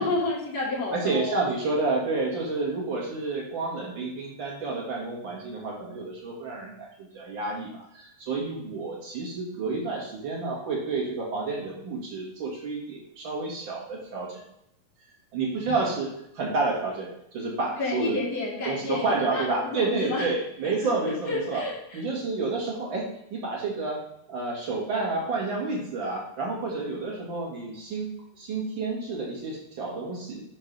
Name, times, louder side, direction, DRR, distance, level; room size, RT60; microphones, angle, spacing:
voice 1, 0.0-1.5 15.7-15.8 17.8-20.3 20.8-20.9 21.3-22.0, left 2 dB, 45° left, -7 dB, 1.3 m, -30 dB
voice 2, 0.9-14.4 15.3-18.2 18.6-21.6 21.9-24.0 24.3-30.4, right 3 dB, 40° right, -2 dB, 2.2 m, -30 dB
6.0 x 6.0 x 5.3 m, 0.79 s
omnidirectional pair, 4.1 m